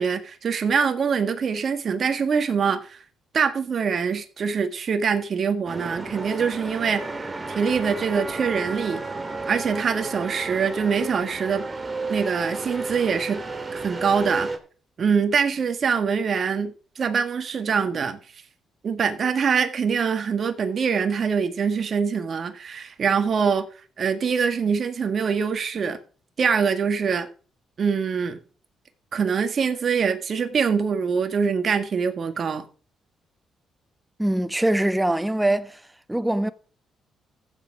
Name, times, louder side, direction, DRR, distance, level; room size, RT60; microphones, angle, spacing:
voice 1, 0.0-3.0 3.3-7.0 7.5-9.0 9.5-11.6 12.1-13.4 13.7-14.5 15.0-18.2 18.8-23.7 24.0-26.0 26.4-27.3 27.8-28.4 29.1-32.7, right 6 dB, 50° right, 1.7 m, -24 dB
sound 1, 5.7-14.6, right 3 dB, 25° right, 2.6 m, -32 dB
voice 2, 34.2-35.8 36.1-36.5, right 1 dB, 10° right, 1.1 m, -23 dB
14.5 x 7.6 x 4.8 m
cardioid pair, 90°, 0 cm